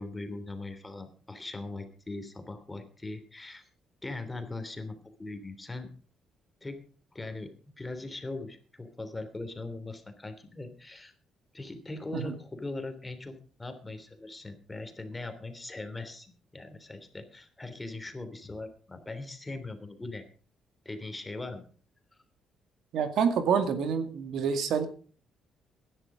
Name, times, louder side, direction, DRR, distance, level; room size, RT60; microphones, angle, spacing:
voice 1, 0.0-3.7 4.0-5.9 6.6-6.8 7.1-7.5 7.8-11.1 11.5-20.3 20.8-21.6, left 2 dB, 15° left, 8 dB, 3.2 m, -40 dB
voice 2, 22.9-24.9, right 6 dB, 75° right, 8 dB, 2.1 m, -27 dB
16.0 x 11.5 x 5.0 m, 0.41 s
cardioid pair, 90°, 0 cm